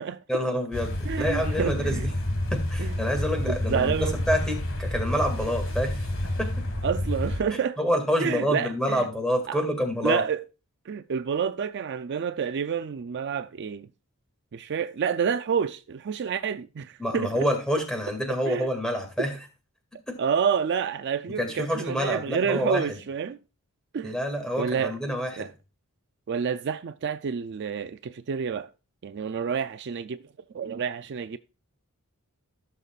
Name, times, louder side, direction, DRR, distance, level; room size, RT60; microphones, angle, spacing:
voice 1, 0.3-2.1 2.5-6.5 7.8-10.2 17.0-19.3 20.1-20.2 21.4-23.0 24.0-25.5, equal, 5° left, 2.1 m, -27 dB
sound 1, 0.7-7.4, left 1 dB, 60° left, 1.9 m, -29 dB
voice 2, 1.1-2.1 2.8-3.0 3.5-4.2 6.8-7.8 8.2-9.0 9.5-9.6 10.0-10.4 10.9-13.9 14.5-17.5 18.5-18.7 19.2-19.3 20.2-23.4 23.9-24.2 24.6-24.9 25.4-25.5 26.3-28.7 29.0-30.2 30.5-31.4, right 6 dB, 50° right, 0.4 m, -28 dB
15.0 x 6.8 x 2.4 m
head